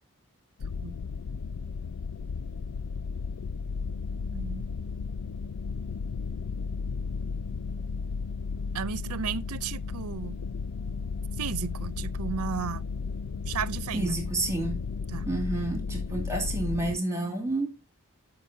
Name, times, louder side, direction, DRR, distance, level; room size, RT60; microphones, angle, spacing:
sound 1, 0.6-17.0, left 5 dB, 70° left, 0.4 m, -34 dB
sound 2, 3.8-17.5, left 2 dB, 20° left, 3.5 m, -46 dB
voice 1, 4.3-4.6 8.7-10.4 11.4-12.9 13.5-14.2 15.1-15.3, right 7 dB, 80° right, 0.6 m, -34 dB
voice 2, 13.9-14.8 15.3-17.8, right 2 dB, 15° right, 2.2 m, -30 dB
14.0 x 5.3 x 2.7 m
head